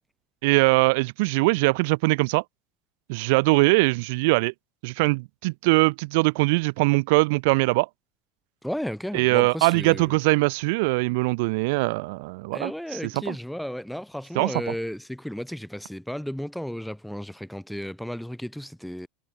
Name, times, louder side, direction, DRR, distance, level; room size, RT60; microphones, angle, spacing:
voice 1, 0.4-2.4 3.1-4.5 4.8-7.9 9.1-13.3 14.3-14.7, right 26 dB, 70° right, 3.3 m, -22 dB
voice 2, 8.6-10.2 12.5-19.1, equal, ahead, 5.5 m, -34 dB
supercardioid pair, 140°, 0 cm